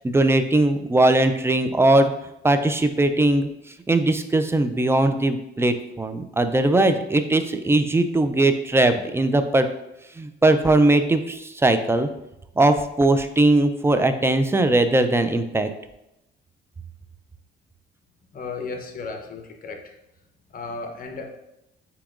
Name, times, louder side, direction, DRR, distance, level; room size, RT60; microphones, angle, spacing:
voice 1, 0.0-2.1 2.4-3.5 3.9-9.7 10.2-12.1 12.6-15.7, right 2 dB, 10° right, 9 dB, 0.3 m, -20 dB
voice 2, 18.3-19.9 20.5-21.2, left 4 dB, 45° left, 3 dB, 0.8 m, -34 dB
7.0 x 2.9 x 2.5 m, 0.88 s
cardioid pair, 90°, 20 cm